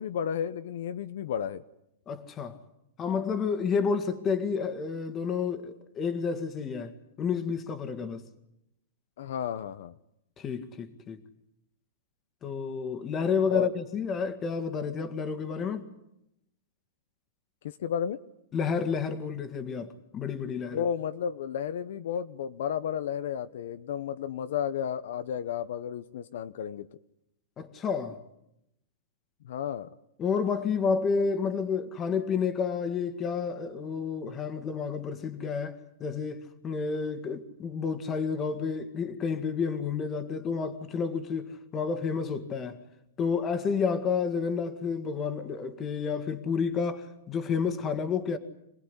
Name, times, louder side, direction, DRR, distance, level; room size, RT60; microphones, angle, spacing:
voice 1, 0.0-1.6 9.2-9.9 13.5-13.7 17.6-18.2 20.7-26.9 29.4-29.9, left 8 dB, 60° left, 0.9 m, -32 dB
voice 2, 2.1-2.6 3.0-8.2 10.4-11.2 12.4-15.8 18.5-20.8 27.6-28.2 30.2-42.8 43.2-48.4, left 5 dB, 20° left, 1.9 m, -30 dB
27.0 x 18.5 x 9.9 m
supercardioid pair, 165°, 0 cm